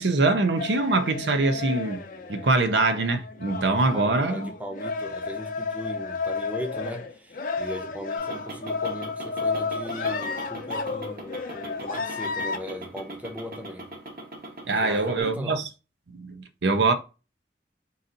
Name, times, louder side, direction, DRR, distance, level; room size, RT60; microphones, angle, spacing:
voice 1, 0.0-2.0 2.3-4.5 14.7-15.7 16.1-16.9, right 3 dB, 70° right, 0.6 m, -23 dB
sound 1, 0.6-12.6, left 4 dB, 45° left, 0.5 m, -32 dB
voice 2, 3.7-13.9 14.8-15.6, equal, 10° right, 0.6 m, -38 dB
sound 2, 8.2-15.2, right 1 dB, 50° right, 1.0 m, -41 dB
4.0 x 2.5 x 3.9 m
head